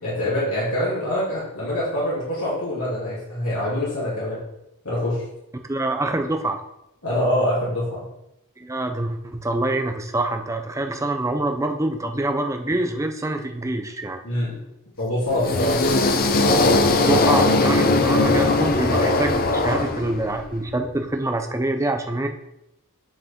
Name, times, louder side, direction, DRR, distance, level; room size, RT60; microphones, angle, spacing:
voice 1, 0.0-4.4 4.8-5.2 7.0-8.1 14.2-14.6 15.0-15.8, left 1 dB, 75° left, -9 dB, 3.0 m, -25 dB
voice 2, 5.7-6.6 8.6-14.2 16.9-22.3, right 2 dB, 15° right, 5 dB, 0.6 m, -25 dB
sound 1, 15.3-20.4, left 2 dB, 40° left, 0.7 m, -19 dB
9.3 x 4.8 x 3.6 m, 0.85 s
head